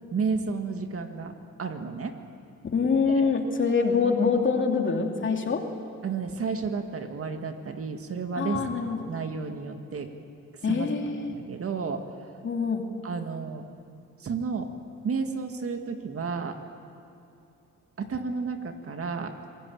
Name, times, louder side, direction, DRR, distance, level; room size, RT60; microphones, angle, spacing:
voice 1, 0.1-1.3 1.6-2.2 3.1-3.3 6.0-10.1 10.6-12.1 13.0-13.7 14.2-14.7 15.0-16.6 18.0-19.4, right 5 dB, 50° right, 6 dB, 2.1 m, -32 dB
voice 2, 2.7-5.6 8.3-9.0 10.6-11.3 12.4-12.8, left 5 dB, 40° left, 3 dB, 3.0 m, -25 dB
26.5 x 17.5 x 8.9 m, 2.6 s
cardioid pair, 90°, 30 cm